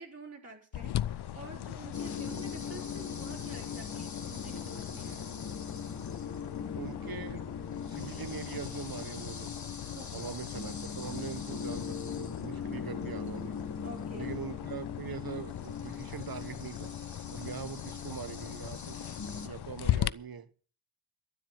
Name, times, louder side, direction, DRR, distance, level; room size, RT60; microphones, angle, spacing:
voice 1, 0.0-5.4 9.9-10.3 13.8-14.3, right 2 dB, 30° right, 4.0 m, -48 dB
sound 1, 0.7-20.1, left 12 dB, 55° left, 0.6 m, -39 dB
sound 2, 0.9-19.7, left 6 dB, 80° left, 2.6 m, -49 dB
sound 3, 1.9-19.5, left 5 dB, 35° left, 1.8 m, -41 dB
voice 2, 6.7-7.5 7.9-9.5 10.1-13.6 14.1-16.9 17.3-19.1 19.4-20.6, right 7 dB, 45° right, 1.3 m, -42 dB
12.5 x 7.6 x 8.9 m
cardioid pair, 55°, 50 cm